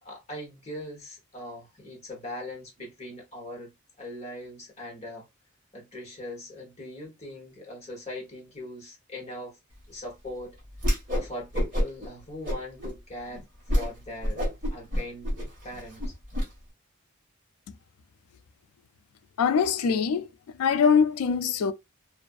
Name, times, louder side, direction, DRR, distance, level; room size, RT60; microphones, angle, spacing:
voice 1, 0.0-5.3 5.7-9.6 9.9-10.6 11.1-13.5 13.7-15.3 15.6-16.1, left 1 dB, 30° left, 1.0 m, -40 dB
Whoosh swoosh swish, 10.8-11.3 11.5-12.1 12.4-12.9 13.3-13.4 13.7-13.9 14.2-16.5, equal, 35° right, 1.3 m, -27 dB
voice 2, 19.4-20.3 20.6-21.7, left 6 dB, 85° left, 0.3 m, -23 dB
2.5 x 2.4 x 2.3 m
head